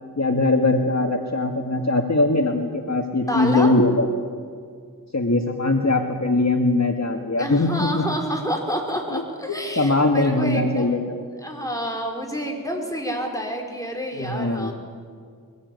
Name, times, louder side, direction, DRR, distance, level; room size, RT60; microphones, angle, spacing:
voice 1, 0.2-4.1 5.1-8.0 9.1-9.2 9.5-11.2 14.2-14.7, left 2 dB, 45° left, 4 dB, 1.8 m, -21 dB
voice 2, 3.3-3.7 7.4-11.0 11.4-14.7, equal, 10° left, 1 dB, 5.2 m, -28 dB
22.5 x 20.0 x 9.4 m, 2.1 s
wide cardioid pair, 45°, 37 cm